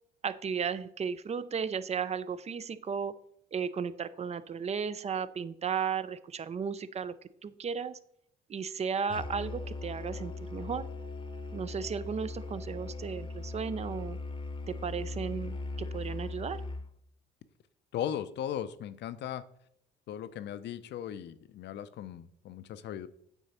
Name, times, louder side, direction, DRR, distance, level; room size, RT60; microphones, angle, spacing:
voice 1, 0.2-3.2 3.5-7.2 7.4-8.0 8.5-10.9 11.5-14.2 14.7-16.6, right 6 dB, 35° right, 15 dB, 0.5 m, -35 dB
Musical instrument, 9.1-16.9, left 3 dB, 25° left, 0.8 m, -39 dB
voice 2, 17.9-19.4 20.1-23.1, left 10 dB, 60° left, 14 dB, 0.6 m, -37 dB
8.2 x 3.9 x 5.6 m, 0.71 s
supercardioid pair, 80°, 20 cm